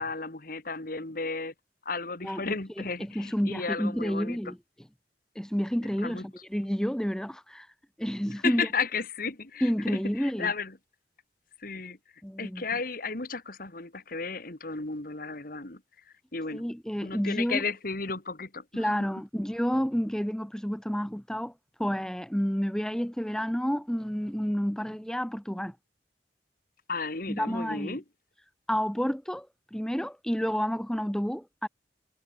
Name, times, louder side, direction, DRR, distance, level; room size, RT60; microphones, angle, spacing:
voice 1, 0.0-1.5 1.9-4.4 6.0-6.2 8.4-10.8 11.6-12.0 12.4-15.8 16.3-16.7 17.0-18.9 26.9-28.0, left 4 dB, 55° left, 2.1 m, -34 dB
voice 2, 2.2-4.6 5.3-7.7 8.0-8.7 9.6-10.5 12.2-12.6 16.5-17.6 18.8-21.5 21.8-25.8 27.3-28.0 28.7-31.7, equal, 5° left, 0.9 m, -30 dB
head